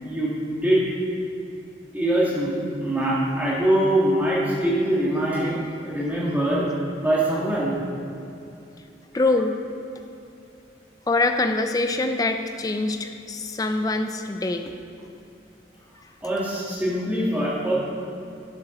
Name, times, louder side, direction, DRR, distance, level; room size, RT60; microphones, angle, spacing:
voice 1, 0.0-0.8 1.9-5.6 5.8-6.7 7.0-7.8 16.2-17.7, right 1 dB, 10° right, -6 dB, 1.9 m, -23 dB
voice 2, 9.1-9.6 11.1-14.7, left 2 dB, 20° left, 7 dB, 0.4 m, -24 dB
11.0 x 7.4 x 3.9 m, 2.6 s
head